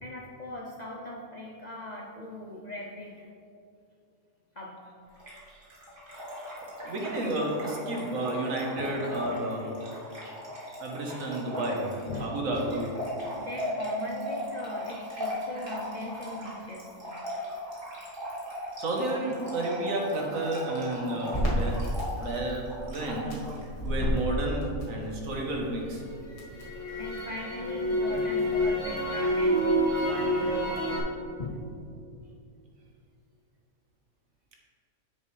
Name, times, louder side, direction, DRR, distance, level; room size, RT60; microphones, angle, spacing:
voice 1, 0.0-3.3 4.5-4.7 8.8-8.9 10.2-10.4 12.1-12.4 13.3-16.9 27.0-29.8 30.0-30.8 31.4-31.7, left 2 dB, 45° left, -3 dB, 0.6 m, -40 dB
Trickle dribble / Fill (with liquid), 5.2-23.6, equal, 40° right, 1.8 m, -38 dB
voice 2, 6.8-9.7 10.8-11.9 12.2-12.8 18.8-21.8 22.2-23.3 23.8-26.0, right 1 dB, 70° right, -1 dB, 1.6 m, -31 dB
Crackle, 21.3-25.5 25.8-31.0, equal, 25° left, 1.5 m, -28 dB
8.7 x 6.7 x 3.3 m, 2.5 s
omnidirectional pair, 1.5 m